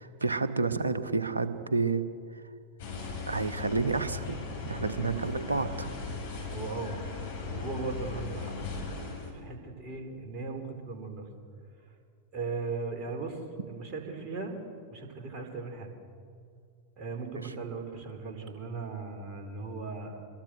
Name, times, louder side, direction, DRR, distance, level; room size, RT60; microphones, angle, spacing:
voice 1, 0.0-2.0 2.3-2.4 3.3-4.4 4.6-5.9, right 4 dB, 75° right, 10 dB, 1.3 m, -30 dB
sound 1, 2.8-9.3, left 4 dB, 55° left, 5.8 m, -38 dB
voice 2, 6.5-7.0 7.4-8.5 9.3-11.3 11.9-12.0 12.3-14.6 14.9-15.9 17.0-20.2, right 4 dB, 35° right, 3 dB, 4.3 m, -38 dB
25.5 x 21.0 x 8.0 m, 2.3 s
figure-of-eight pair, 90°, 0 cm